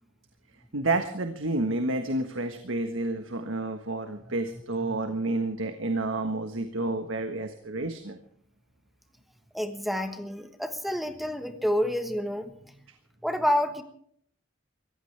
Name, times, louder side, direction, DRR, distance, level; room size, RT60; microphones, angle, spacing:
voice 1, 0.7-8.2, right 2 dB, 75° right, 6 dB, 1.5 m, -30 dB
voice 2, 9.5-12.8 13.2-13.8, equal, ahead, 7 dB, 1.3 m, -29 dB
23.5 x 16.5 x 3.4 m, 0.64 s
head